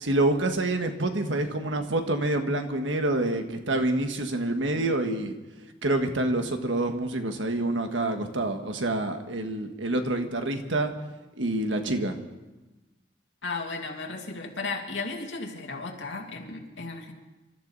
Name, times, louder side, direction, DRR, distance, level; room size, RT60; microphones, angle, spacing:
voice 1, 0.0-5.3 5.8-10.9 11.4-12.1, right 2 dB, 90° right, 6 dB, 1.6 m, -27 dB
voice 2, 13.4-17.1, left 3 dB, 80° left, 1 dB, 2.5 m, -35 dB
26.5 x 13.5 x 4.1 m, 1.1 s
head